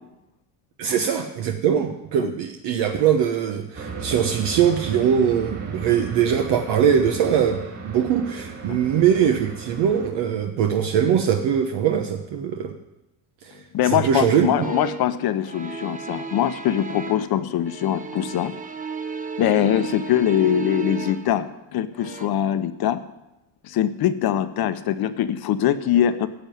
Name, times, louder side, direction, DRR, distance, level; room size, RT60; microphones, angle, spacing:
voice 1, 0.8-12.7 13.4-14.7, right 8 dB, 70° right, 4 dB, 1.2 m, -22 dB
sound 1, 3.7-10.1, right 4 dB, 35° right, 3.1 m, -36 dB
voice 2, 13.7-18.5 19.4-23.0 23.6-26.3, left 10 dB, 55° left, 12 dB, 1.0 m, -22 dB
sound 2, 14.6-15.2 15.4-17.4 17.6-21.4 21.9-22.3, right 5 dB, 20° right, 1.0 m, -33 dB
11.5 x 7.1 x 9.2 m, 0.93 s
supercardioid pair, 95°, 43 cm